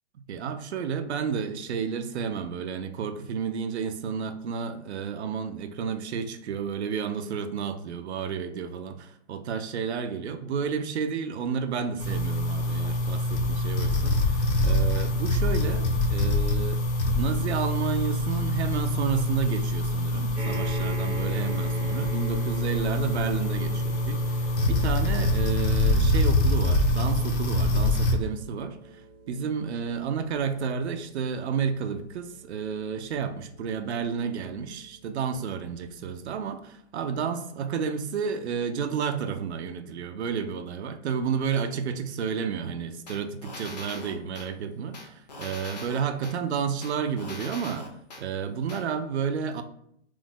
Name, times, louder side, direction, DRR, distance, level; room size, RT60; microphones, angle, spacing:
voice 1, 0.3-47.9 48.2-49.6, right 6 dB, 70° right, 9 dB, 0.5 m, -31 dB
sound 1, 12.0-28.1, left 1 dB, 75° left, 0.8 m, -25 dB
sound 2, 20.3-34.9 35.7-35.8 36.0-36.1, right 3 dB, 35° right, 0.7 m, -43 dB
sound 3, 43.1-44.5 44.9-46.4 46.8-48.2 48.7-48.8, left 2 dB, 40° left, 0.5 m, -41 dB
3.1 x 2.1 x 3.4 m, 0.71 s
hypercardioid pair, 175°, 34 cm